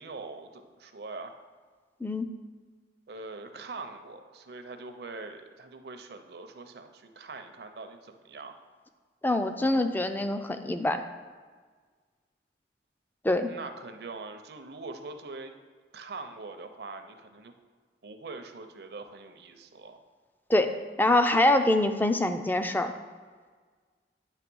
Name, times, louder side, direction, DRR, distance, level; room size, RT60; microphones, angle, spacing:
voice 1, 0.0-1.3 3.1-8.5 13.5-15.5 15.9-17.5 18.0-20.0, right 3 dB, 60° right, 7 dB, 0.6 m, -43 dB
voice 2, 2.0-2.3 9.2-11.0 13.2-13.5 20.5-20.7 21.0-22.9, left 1 dB, 10° left, 7 dB, 0.4 m, -24 dB
9.1 x 3.2 x 6.1 m, 1.5 s
head